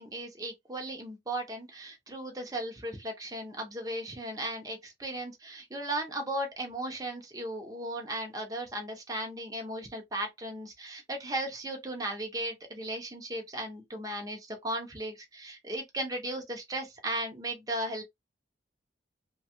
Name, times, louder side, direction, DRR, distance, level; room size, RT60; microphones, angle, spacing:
voice 1, 0.0-18.0, right 1 dB, 20° right, 0.7 m, -36 dB
3.0 x 2.2 x 2.9 m
head